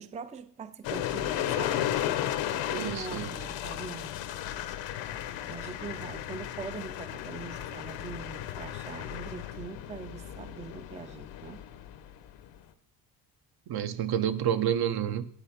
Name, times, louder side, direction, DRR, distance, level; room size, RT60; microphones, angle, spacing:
voice 1, 0.0-1.8 2.7-4.2 5.5-11.6, right 5 dB, 15° right, 0.4 m, -42 dB
sound 1, 0.8-12.6, left 11 dB, 90° left, 1.0 m, -35 dB
voice 2, 2.7-3.3 13.7-15.3, right 9 dB, 60° right, 0.9 m, -29 dB
9.0 x 8.0 x 5.8 m
cardioid pair, 125°, 43 cm